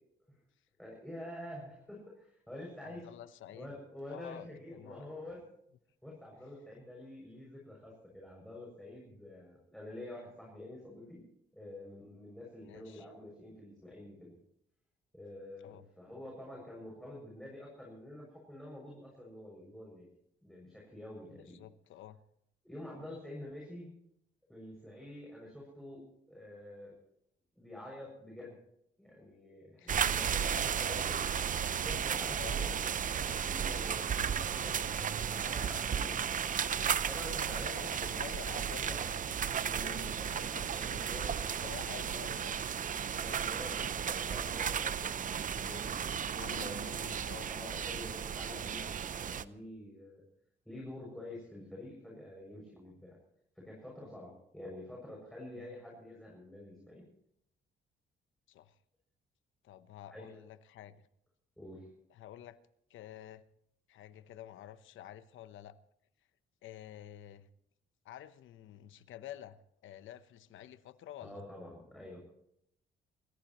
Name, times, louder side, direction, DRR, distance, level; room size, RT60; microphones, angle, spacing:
voice 1, 0.8-3.1 3.5-5.5 6.0-11.2 11.5-14.3 15.1-20.1 20.4-21.6 22.6-23.9 24.5-26.9 27.6-28.6 29.0-31.3 31.8-32.7 33.0-36.4 37.1-39.0 39.7-41.4 43.2-50.2 50.7-53.2 53.6-57.0 60.1-60.4 61.6-61.9 71.2-72.2, left 1 dB, ahead, -3 dB, 6.9 m, -48 dB
voice 2, 2.8-3.7 4.1-5.1 12.6-13.1 15.6-15.9 21.3-22.2 29.8-30.0 30.4-30.7 32.4-32.6 37.3-42.6 46.3-47.5 55.5-55.8 58.5-58.8 59.6-61.1 62.1-62.6 62.9-63.4 63.9-65.8 66.6-67.5 68.0-71.5, left 11 dB, 80° left, 12 dB, 1.0 m, -50 dB
sound 1, 29.9-49.4, right 8 dB, 40° right, 0.6 m, -34 dB
28.0 x 15.0 x 3.1 m, 0.74 s
cardioid pair, 90°, 20 cm